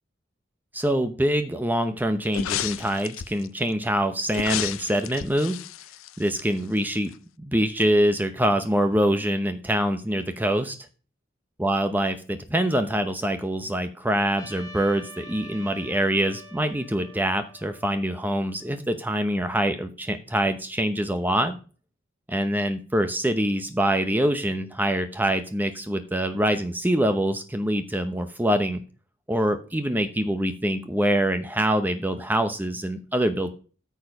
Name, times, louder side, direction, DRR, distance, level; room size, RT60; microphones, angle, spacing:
voice 1, 0.7-5.6 6.2-7.1 7.4-10.8 11.6-21.6 22.3-28.8 29.3-33.5, right 1 dB, 10° right, 8 dB, 0.7 m, -25 dB
sound 1, 2.3-3.5 4.3-6.8 7.1-7.2, left 10 dB, 85° left, 0.5 m, -32 dB
Trumpet, 14.4-18.8, equal, 20° left, 1.4 m, -46 dB
13.5 x 4.5 x 5.3 m, 0.38 s
head